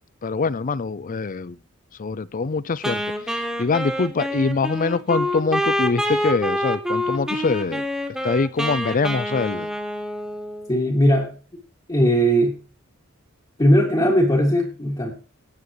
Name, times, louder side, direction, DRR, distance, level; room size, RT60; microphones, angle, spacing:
voice 1, 0.2-1.6 2.0-3.0 3.3-7.8 8.2-9.7, left 4 dB, 40° left, 0.5 m, -24 dB
Wind instrument woodwind instrument, 2.8-10.7, equal, 5° right, 2.0 m, -26 dB
voice 2, 10.7-11.3 11.9-12.6 13.6-15.1, equal, 20° left, 2.1 m, -18 dB
17.0 x 9.2 x 3.1 m
head